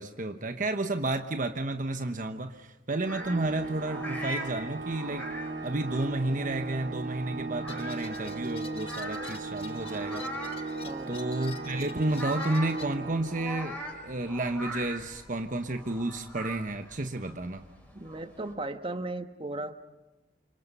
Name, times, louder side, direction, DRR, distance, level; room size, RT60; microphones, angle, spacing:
voice 1, 0.0-5.3 5.6-10.2 11.1-17.6, right 2 dB, 45° right, 7 dB, 1.1 m, -31 dB
sound 1, 3.0-18.5, equal, 10° left, 5.7 m, -42 dB
Organ, 3.0-13.8, right 3 dB, 65° right, 3.1 m, -37 dB
sound 2, 7.7-12.9, left 4 dB, 35° left, 1.3 m, -46 dB
voice 2, 10.8-11.2 17.9-19.7, right 2 dB, 30° right, 9 dB, 1.3 m, -36 dB
29.0 x 26.0 x 5.5 m, 1.1 s
head